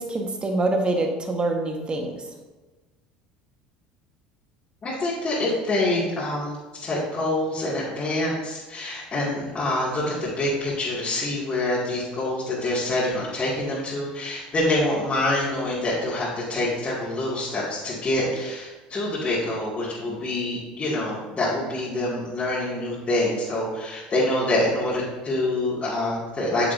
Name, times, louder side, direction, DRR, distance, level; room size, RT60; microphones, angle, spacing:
voice 1, 0.0-2.3, right 2 dB, 25° right, 3 dB, 1.6 m, -25 dB
voice 2, 4.8-26.7, left 1 dB, 35° left, -9 dB, 2.5 m, -26 dB
8.8 x 7.1 x 2.8 m, 1.2 s
hypercardioid pair, 80°, 4 cm